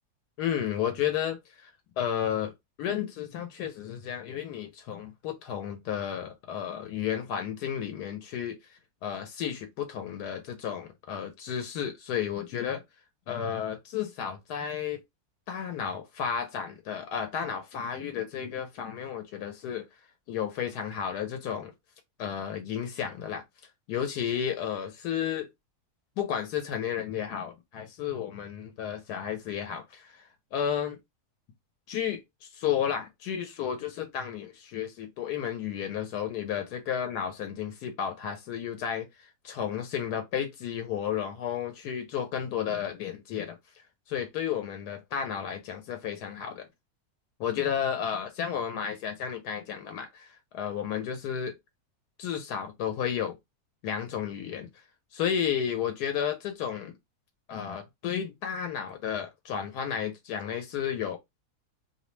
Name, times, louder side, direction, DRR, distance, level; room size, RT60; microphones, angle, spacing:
voice 1, 0.4-1.7 2.0-2.5 2.8-12.8 13.3-15.0 15.5-19.9 20.3-21.7 22.2-23.4 23.9-25.5 26.2-31.0 31.9-39.1 39.4-43.6 44.1-46.7 47.4-51.5 52.2-53.4 53.8-54.7 55.1-56.9 57.5-61.2, left 8 dB, 90° left, 1.1 m, -32 dB
2.7 x 2.0 x 3.0 m
omnidirectional pair, 1.7 m